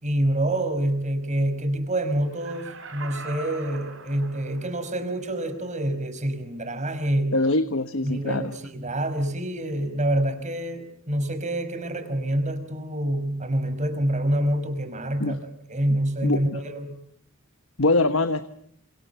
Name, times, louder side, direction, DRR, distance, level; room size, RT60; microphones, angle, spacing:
voice 1, 0.0-7.4 8.0-17.0, right 1 dB, 35° right, 10 dB, 5.2 m, -27 dB
Laughter, 2.3-4.9 5.4-5.5, right 3 dB, 65° right, 5.4 m, -41 dB
voice 2, 7.3-8.6 15.2-15.4 16.2-16.6 17.8-18.4, left 2 dB, 70° left, 10 dB, 1.3 m, -23 dB
29.5 x 27.5 x 7.0 m, 0.66 s
head